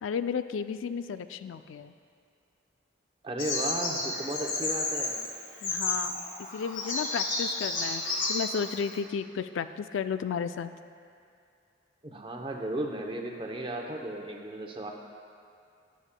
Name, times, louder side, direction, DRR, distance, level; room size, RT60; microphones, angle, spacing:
voice 1, 0.0-1.9 5.6-6.3 6.5-10.7, left 6 dB, 80° left, 11 dB, 0.3 m, -33 dB
voice 2, 3.2-5.2 12.0-14.9, right 1 dB, 25° right, 1 dB, 0.7 m, -35 dB
Bird vocalization bird call bird song, 3.4-9.0, left 3 dB, 45° left, 1.7 m, -32 dB
21.0 x 7.2 x 2.2 m, 2.4 s
head